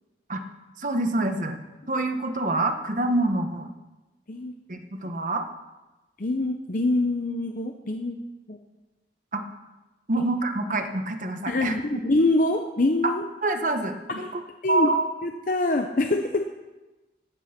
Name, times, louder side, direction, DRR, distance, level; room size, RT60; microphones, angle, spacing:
voice 1, 0.8-1.6 1.9-3.7 4.7-5.5 9.3-9.4 10.1-12.0 13.0-13.1 13.4-14.3 14.7-15.1, right 2 dB, 45° right, 6 dB, 1.2 m, -26 dB
voice 2, 6.2-8.2 8.5-8.6 10.2-10.3 11.5-13.2 14.1-14.3 14.6-14.9 15.2-16.5, left 2 dB, 45° left, 4 dB, 0.8 m, -25 dB
14.0 x 9.3 x 5.9 m, 1.1 s
head